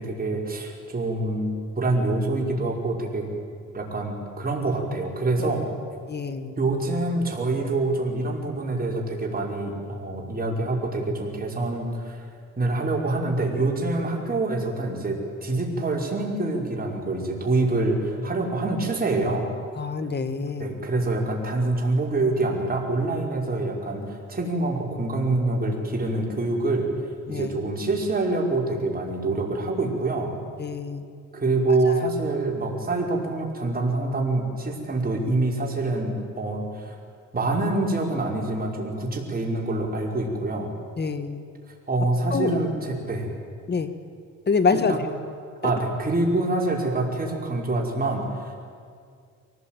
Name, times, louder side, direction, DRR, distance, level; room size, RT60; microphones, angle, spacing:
voice 1, 0.0-3.3 3.7-5.7 6.6-12.3 12.6-19.5 20.6-26.9 27.3-30.3 31.3-37.0 37.3-40.7 41.9-43.3 44.7-45.0 45.6-48.6, right 2 dB, 30° right, 0 dB, 5.4 m, -26 dB
voice 2, 6.1-6.5 19.8-20.8 27.3-27.6 30.6-31.1 31.9-32.0 41.0-41.4 42.3-42.6 43.7-43.9 44.5-44.9 45.6-45.7, left 5 dB, 35° left, 11 dB, 1.8 m, -26 dB
24.0 x 18.5 x 9.2 m, 2.2 s
cardioid pair, 90°, 30 cm